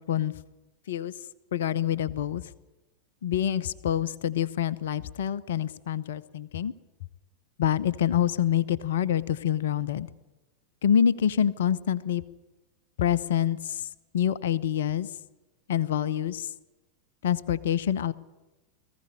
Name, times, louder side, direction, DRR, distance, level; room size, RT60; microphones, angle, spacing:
voice 1, 1.5-2.4 3.2-6.7 7.6-10.1 10.8-12.2 13.0-13.9 14.1-15.1 15.7-16.5 17.2-18.1, left 9 dB, 60° left, 19 dB, 0.8 m, -26 dB
20.5 x 15.5 x 10.0 m, 1.1 s
figure-of-eight pair, 90°, 0 cm